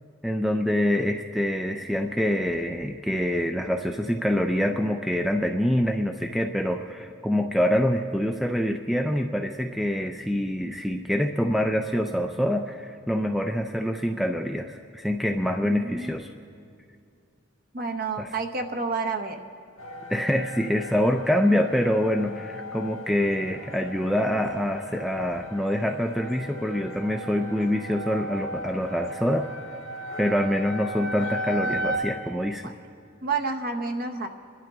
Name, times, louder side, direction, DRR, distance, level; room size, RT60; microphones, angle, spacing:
voice 1, 0.2-16.3 18.2-18.3 20.1-29.5 30.2-32.7, equal, ahead, 5 dB, 0.4 m, -25 dB
voice 2, 15.6-16.2 17.7-19.4 32.6-32.7 33.2-34.3, right 4 dB, 45° right, 5 dB, 0.9 m, -29 dB
sound 1, 19.8-32.0, equal, 85° left, 1.5 m, -36 dB
27.5 x 12.0 x 3.6 m, 2.4 s
head